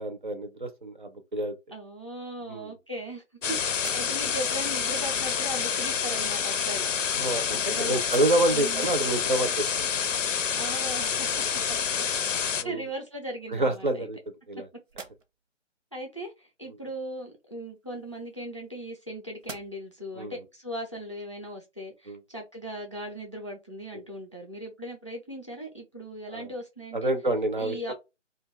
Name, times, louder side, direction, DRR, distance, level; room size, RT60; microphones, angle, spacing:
voice 1, 0.0-1.5 2.5-2.7 7.2-9.9 12.6-12.8 13.5-14.2 14.5-14.7 20.2-20.4 22.1-22.2 26.3-26.5 26.9-27.9, right 1 dB, 40° right, 0.4 m, -28 dB
voice 2, 1.7-3.2 3.5-6.9 7.7-8.0 8.5-8.9 10.6-12.1 12.3-14.1 15.9-27.1 27.6-27.9, right 1 dB, 25° left, 0.4 m, -38 dB
sound 1, 3.4-12.6, left 7 dB, 80° left, 0.5 m, -28 dB
sound 2, 3.7-4.6 5.7-5.8 6.8-7.7 8.0-8.7 9.2-9.3 12.0-12.1 12.5-13.2 13.8-14.5 14.8-15.6 17.6-19.0 19.4-20.1, right 4 dB, 80° right, 0.8 m, -48 dB
2.5 x 2.2 x 3.2 m
figure-of-eight pair, 150°, 37 cm